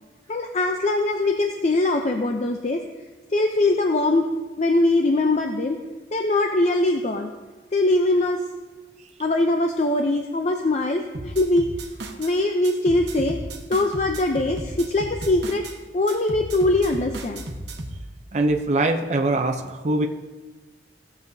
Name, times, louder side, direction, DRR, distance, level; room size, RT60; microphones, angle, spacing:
voice 1, 0.3-2.8 3.3-4.3 4.6-5.8 6.1-7.3 7.7-8.4 9.2-11.7 12.2-13.4 13.7-15.7 15.9-17.4, left 2 dB, 40° left, 4 dB, 0.5 m, -22 dB
sound 1, 11.1-12.3 12.6-15.8 16.1-18.0, right 1 dB, 75° right, 1.0 m, -34 dB
voice 2, 18.3-20.1, right 2 dB, 40° right, 3 dB, 0.5 m, -22 dB
16.0 x 7.0 x 2.7 m, 1.3 s
head